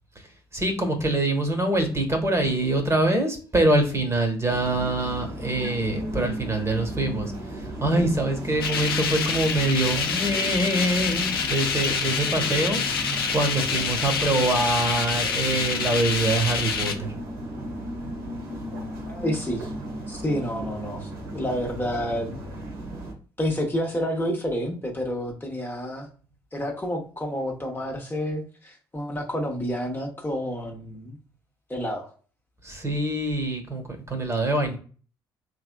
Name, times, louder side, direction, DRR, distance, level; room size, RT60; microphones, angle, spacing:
voice 1, 0.1-12.8 13.3-17.1 32.6-34.8, right 2 dB, 25° right, 5 dB, 1.4 m, -25 dB
sound 1, 4.5-23.1, right 1 dB, 75° right, 1.1 m, -36 dB
sound 2, 8.6-16.9, left 6 dB, 80° left, 0.5 m, -27 dB
voice 2, 19.0-19.7 20.1-22.4 23.4-26.1 26.5-31.2 31.7-32.1, equal, 15° left, 0 dB, 1.0 m, -29 dB
3.4 x 3.3 x 2.3 m, 0.40 s
figure-of-eight pair, 45°, 12 cm